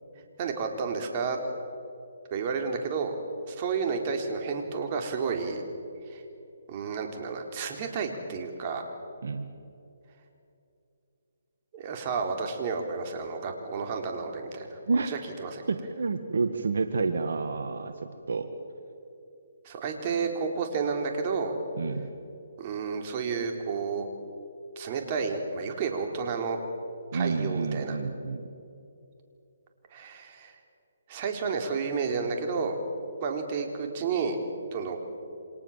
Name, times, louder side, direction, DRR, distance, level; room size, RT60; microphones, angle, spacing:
voice 1, 0.4-1.4 2.3-3.2 3.5-5.6 6.1-6.2 6.7-8.8 11.7-14.8 15.1-15.7 19.6-21.5 22.6-24.1 24.8-26.6 27.1-28.0 29.9-30.5 31.1-32.8 33.2-34.4 34.7-35.0, right 5 dB, 35° right, 4 dB, 4.0 m, -31 dB
voice 2, 9.2-9.5 14.9-15.2 15.7-18.5 21.8-22.1 27.1-28.4, right 4 dB, 70° right, 7 dB, 1.8 m, -29 dB
29.0 x 26.5 x 7.5 m, 2.7 s
hypercardioid pair, 150°, 0 cm